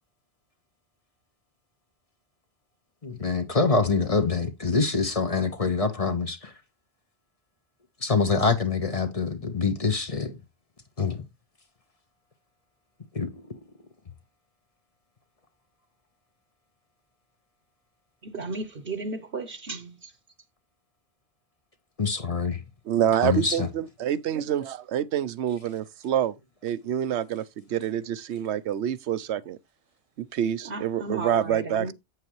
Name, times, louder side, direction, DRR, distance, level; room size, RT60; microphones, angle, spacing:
voice 1, 3.0-6.5 8.0-10.4 11.0-11.2 13.1-13.6 22.0-22.6 23.2-23.7, left 4 dB, 35° left, 1.0 m, -25 dB
voice 2, 18.2-20.1 30.6-31.9, right 3 dB, 60° right, 1.0 m, -34 dB
voice 3, 22.9-26.4 26.6-29.6 30.2-31.9, right 10 dB, 85° right, 0.9 m, -27 dB
8.3 x 7.7 x 3.1 m
omnidirectional pair, 1.1 m